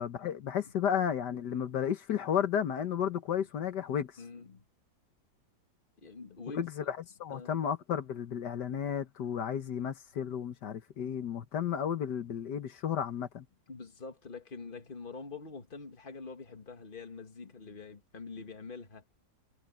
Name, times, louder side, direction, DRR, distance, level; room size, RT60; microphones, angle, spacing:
voice 1, 0.0-4.1 6.5-13.5, left 8 dB, 75° left, 1.8 m, -33 dB
voice 2, 4.2-4.6 6.0-6.9 7.3-7.5 13.7-19.0, left 4 dB, 30° left, 1.9 m, -45 dB
omnidirectional pair, 1.8 m